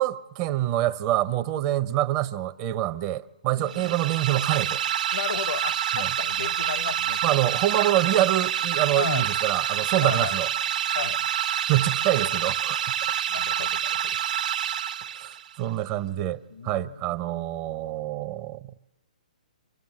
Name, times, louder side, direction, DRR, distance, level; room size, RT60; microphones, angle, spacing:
voice 1, 0.0-4.8 5.9-6.1 7.2-10.5 11.7-12.9 15.1-18.6, right 13 dB, 30° right, 0.6 m, -26 dB
voice 2, 3.5-3.9 5.1-7.4 8.9-9.2 10.0-10.4 11.0-11.3 13.3-14.2 16.5-17.1, left 7 dB, 75° left, 0.7 m, -34 dB
sound 1, 3.7-15.5, right 9 dB, 65° right, 0.8 m, -27 dB
25.5 x 15.0 x 7.6 m
hypercardioid pair, 140°, 5 cm